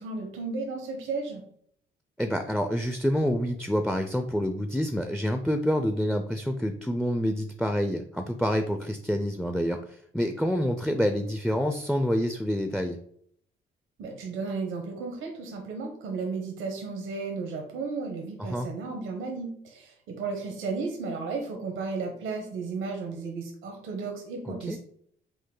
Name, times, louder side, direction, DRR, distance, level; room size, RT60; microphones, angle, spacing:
voice 1, 0.0-1.4 14.0-24.8, right 4 dB, 85° right, 2 dB, 1.0 m, -34 dB
voice 2, 2.2-13.0 18.4-18.7 24.5-24.8, equal, ahead, 6 dB, 0.4 m, -27 dB
5.2 x 2.1 x 3.8 m, 0.65 s
cardioid pair, 90°, 20 cm